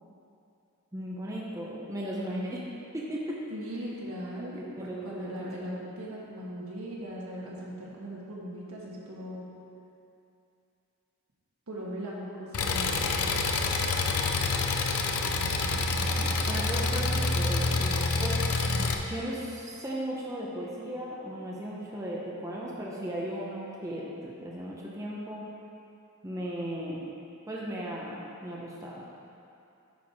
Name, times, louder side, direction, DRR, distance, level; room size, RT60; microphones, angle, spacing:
voice 1, 0.9-2.7 2.9-3.4 4.5-5.9 15.4-18.4 19.1-25.4 26.2-27.1 27.5-29.0, equal, 15° right, -5 dB, 0.8 m, -36 dB
voice 2, 3.5-9.5 11.7-13.0 18.7-19.0, equal, 75° right, -5 dB, 1.6 m, -39 dB
Engine, 12.5-18.9, left 3 dB, 90° left, 0.6 m, -27 dB
9.4 x 4.6 x 4.8 m, 2.7 s
head